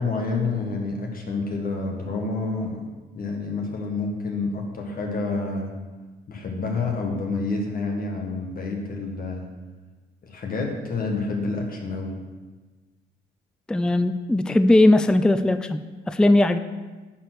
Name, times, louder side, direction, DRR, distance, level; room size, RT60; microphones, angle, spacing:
voice 1, 0.0-2.8 3.1-5.7 6.3-9.5 10.2-12.1, left 3 dB, 45° left, 0 dB, 1.8 m, -28 dB
voice 2, 13.7-16.6, left 1 dB, 5° left, 10 dB, 0.4 m, -19 dB
10.5 x 4.3 x 6.3 m, 1.3 s
cardioid pair, 90°, 20 cm